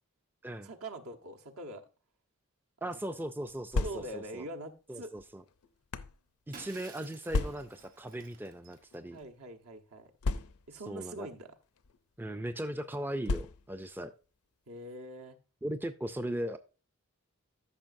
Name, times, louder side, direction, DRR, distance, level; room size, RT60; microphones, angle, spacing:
voice 1, 0.6-1.8 3.1-3.2 3.8-5.1 9.1-10.1 10.7-11.5 14.7-15.3, right 1 dB, 75° right, 1.1 m, -43 dB
voice 2, 2.8-4.5 4.9-5.4 6.5-9.2 10.9-11.3 12.2-14.1 15.6-16.6, right 1 dB, 10° right, 0.3 m, -38 dB
sound 1, 3.5-4.4 5.2-6.2 7.3-7.9 8.8-9.0 9.2-9.3 10.2-10.9 11.8-12.0 13.2-13.9, left 3 dB, 80° left, 0.5 m, -34 dB
Shatter, 6.5-9.2, right 5 dB, 40° right, 1.1 m, -53 dB
13.5 x 5.9 x 2.6 m
head